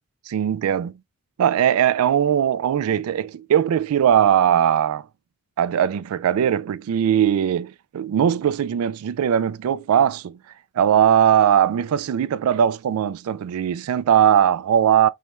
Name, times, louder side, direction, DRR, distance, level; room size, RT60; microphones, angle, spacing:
voice 1, 0.3-0.9 1.4-5.0 5.6-10.4 10.8-15.1, right 9 dB, 90° right, 0.3 m, -19 dB
4.2 x 3.2 x 2.2 m
head